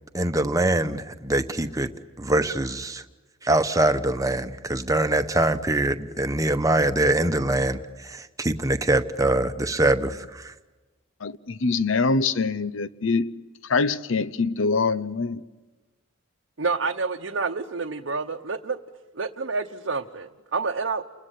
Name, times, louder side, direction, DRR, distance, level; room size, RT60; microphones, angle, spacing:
voice 1, 0.1-1.9 2.2-3.0 3.4-10.5, right 2 dB, 15° right, 1.0 m, -23 dB
voice 2, 11.2-13.3 13.7-15.4, left 4 dB, 80° left, 0.8 m, -24 dB
voice 3, 16.6-18.8 19.1-21.0, right 4 dB, 70° right, 0.9 m, -28 dB
29.5 x 21.5 x 8.3 m
head